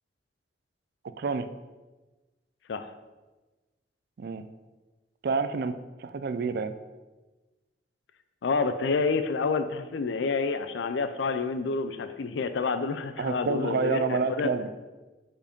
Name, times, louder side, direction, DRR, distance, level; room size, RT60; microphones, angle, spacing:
voice 1, 1.0-1.5 4.2-4.5 5.2-5.7 6.0-6.7 13.2-14.7, right 4 dB, 60° right, 11 dB, 0.4 m, -28 dB
voice 2, 8.4-14.5, left 4 dB, 90° left, 10 dB, 0.4 m, -28 dB
5.1 x 4.5 x 5.2 m, 1.2 s
head